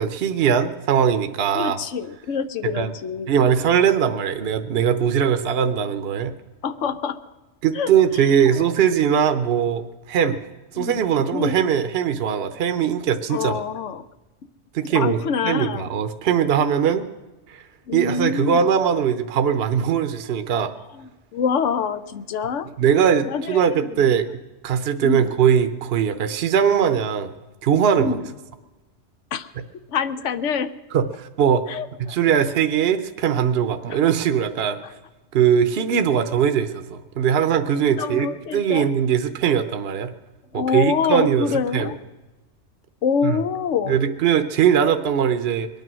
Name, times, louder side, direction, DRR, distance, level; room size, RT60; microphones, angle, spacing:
voice 1, 0.0-1.8 2.6-2.9 3.3-6.3 7.6-10.4 10.7-13.6 14.7-17.0 17.5-17.6 17.9-20.7 22.8-24.3 24.6-27.3 27.6-28.2 30.9-31.7 32.0-34.8 35.3-40.1 40.5-41.5 41.7-41.9 43.2-43.4 43.9-45.7, right 8 dB, 60° right, 9 dB, 0.9 m, -20 dB
voice 2, 1.5-3.3 6.6-7.2 7.7-7.9 8.5-8.6 10.8-11.0 11.3-11.5 13.3-14.1 14.9-15.8 17.9-18.6 20.9-22.7 23.2-23.6 25.0-25.3 28.0-28.3 29.3-29.5 29.9-30.7 31.7-32.2 34.8-34.9 37.4-37.5 38.0-38.9 40.5-42.0 43.0-44.0, left 6 dB, 85° left, 11 dB, 1.0 m, -26 dB
22.0 x 9.3 x 6.1 m, 1.1 s
omnidirectional pair, 1.2 m